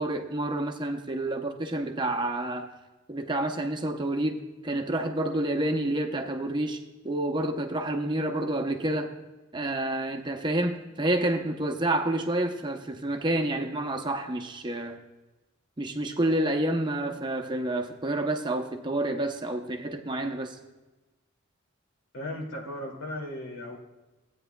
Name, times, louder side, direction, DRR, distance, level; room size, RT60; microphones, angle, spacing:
voice 1, 0.0-2.7 3.1-4.4 4.6-6.8 7.0-9.1 9.5-15.0 15.8-20.6, right 1 dB, 25° right, 4 dB, 0.7 m, -29 dB
voice 2, 22.1-23.8, left 1 dB, 75° left, -1 dB, 2.4 m, -36 dB
15.5 x 9.0 x 2.3 m, 1.1 s
head